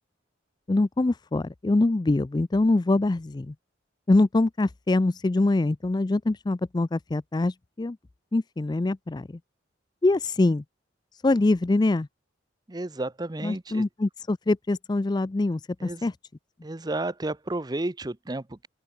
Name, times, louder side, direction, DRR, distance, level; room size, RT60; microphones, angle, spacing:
voice 1, 0.7-3.5 4.1-8.0 8.3-9.3 10.0-10.6 11.2-12.1 13.4-16.1, left 2 dB, 20° left, 0.4 m, -24 dB
voice 2, 12.7-13.9 15.8-16.1 16.6-18.7, right 2 dB, 20° right, 0.7 m, -32 dB
open air
head